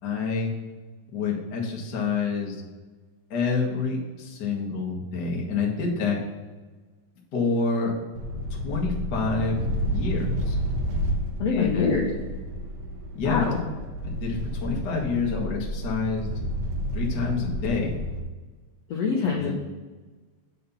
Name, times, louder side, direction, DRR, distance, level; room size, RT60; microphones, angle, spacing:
voice 1, 0.0-0.5 1.1-2.6 3.3-6.2 7.3-7.9 8.6-10.6 11.4-12.0 13.1-13.4 14.0-16.3 16.9-18.0 19.4-19.5, left 4 dB, 65° left, -2 dB, 1.0 m, -28 dB
sound 1, 8.1-18.2, equal, 65° right, 2.0 m, -30 dB
voice 2, 11.4-12.1 13.2-13.6 18.9-19.5, left 5 dB, 85° left, -2 dB, 1.4 m, -24 dB
8.4 x 4.4 x 5.5 m, 1.3 s
omnidirectional pair, 4.6 m